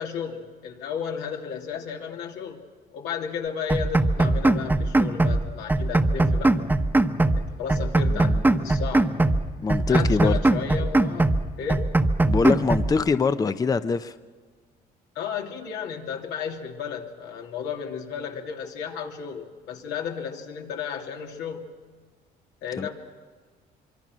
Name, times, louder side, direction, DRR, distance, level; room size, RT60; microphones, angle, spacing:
voice 1, 0.0-2.7 2.9-6.5 7.4-9.2 9.9-11.9 15.1-21.7 22.6-22.9, left 7 dB, 85° left, 2 dB, 2.9 m, -33 dB
sound 1, 3.7-5.4 5.7-7.4 7.7-9.4 9.7-11.4 11.7-12.9, right 2 dB, 10° right, 1.1 m, -21 dB
voice 2, 9.6-10.4 12.3-14.1 22.8-22.9, left 5 dB, 20° left, 11 dB, 0.7 m, -24 dB
24.5 x 24.0 x 6.2 m, 1.5 s
cardioid pair, 110°, 17 cm